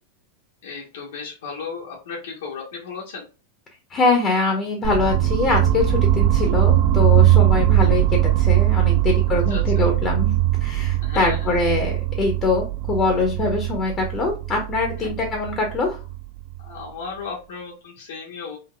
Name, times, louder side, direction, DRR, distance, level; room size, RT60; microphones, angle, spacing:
voice 1, 0.6-3.3 9.0-9.1 9.5-9.6 11.0-11.6 15.0-15.1 16.6-18.6, left 5 dB, 80° left, -3 dB, 0.9 m, -35 dB
voice 2, 3.9-16.0, left 3 dB, 25° left, 2 dB, 0.6 m, -23 dB
sound 1, 4.8-16.8, right 13 dB, 45° right, 0.3 m, -20 dB
3.7 x 2.4 x 2.2 m, 0.32 s
supercardioid pair, 155°, 0 cm